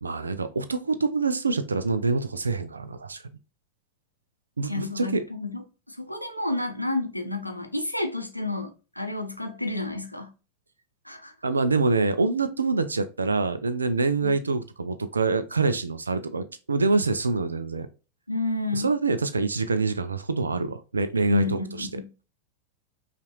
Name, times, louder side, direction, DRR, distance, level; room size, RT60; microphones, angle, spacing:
voice 1, 0.0-3.2 4.6-5.2 11.4-17.9 18.7-21.9, right 3 dB, 75° right, 0.3 m, -25 dB
voice 2, 4.7-10.3 11.0-11.3 14.2-14.3 18.3-18.9 21.3-22.1, left 2 dB, 90° left, 0.7 m, -30 dB
5.5 x 2.5 x 3.0 m
figure-of-eight pair, 90°, 0 cm